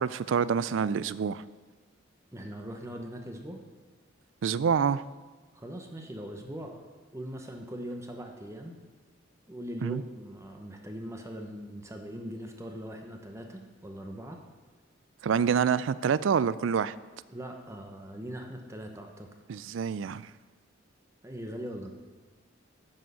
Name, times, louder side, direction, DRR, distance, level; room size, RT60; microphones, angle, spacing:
voice 1, 0.0-1.4 4.4-5.0 9.8-10.0 15.2-16.9 19.5-20.3, right 6 dB, 75° right, 17 dB, 0.4 m, -27 dB
voice 2, 2.3-3.6 5.5-8.8 9.5-14.4 17.3-19.3 21.2-21.9, equal, 15° right, 3 dB, 0.9 m, -41 dB
9.1 x 6.3 x 6.8 m, 1.3 s
head